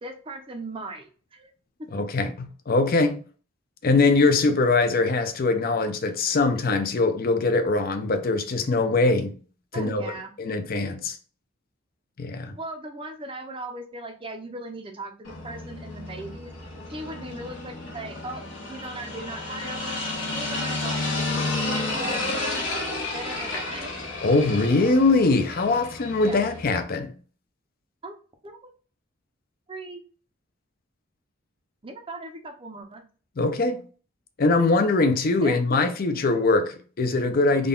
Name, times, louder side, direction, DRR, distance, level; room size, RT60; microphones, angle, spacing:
voice 1, 0.0-1.5 1.8-1.9 9.7-10.3 12.6-16.5 16.9-20.0 20.3-21.4 21.7-22.6 23.1-23.9 26.2-26.4 28.0-28.1 28.4-28.7 29.7-30.0 31.8-33.0 35.4-35.6, right 2 dB, 25° right, 0.5 m, -38 dB
voice 2, 1.9-3.2 3.8-9.3 9.7-10.1 10.4-11.2 12.2-12.5 24.2-27.1 33.4-33.8 34.4-37.7, left 3 dB, 45° left, 0.5 m, -22 dB
sound 1, 15.2-26.8, left 2 dB, 70° left, 1.3 m, -31 dB
3.7 x 2.3 x 3.7 m
head